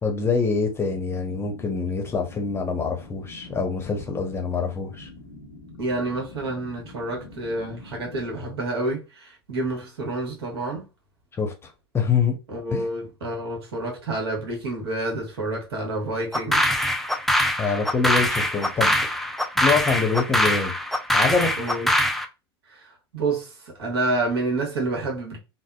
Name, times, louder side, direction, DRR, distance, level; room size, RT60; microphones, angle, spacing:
voice 1, 0.0-5.1 11.4-11.5 11.9-12.4 12.7-12.9 17.6-18.9 19.6-20.7 21.1-21.5, left 5 dB, 20° left, 0.7 m, -25 dB
sound 1, 0.8-8.3, left 2 dB, 70° left, 0.7 m, -45 dB
voice 2, 5.8-10.9 12.5-16.7 21.6-22.0 22.7-25.4, right 2 dB, 70° right, 1.2 m, -29 dB
sound 2, 16.3-22.3, left 1 dB, ahead, 0.3 m, -23 dB
3.4 x 2.0 x 2.2 m
hypercardioid pair, 90°, 13 cm